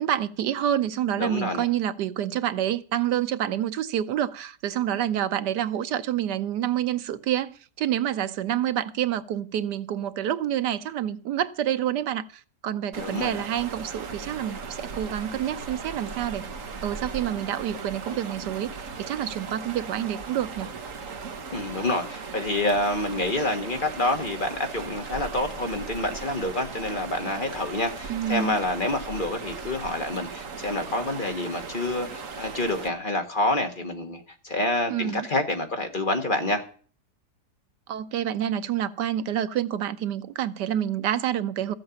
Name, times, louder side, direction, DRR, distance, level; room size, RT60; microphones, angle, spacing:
voice 1, 0.0-16.5 16.8-20.7 28.1-28.6 34.9-35.3 37.9-41.7, right 11 dB, 90° right, 1.4 m, -28 dB
voice 2, 1.2-1.7 13.0-13.4 21.5-36.6, left 2 dB, 30° left, 1.6 m, -27 dB
sound 1, 12.9-32.9, right 5 dB, 55° right, 1.5 m, -38 dB
14.5 x 7.7 x 7.0 m
omnidirectional pair, 1.8 m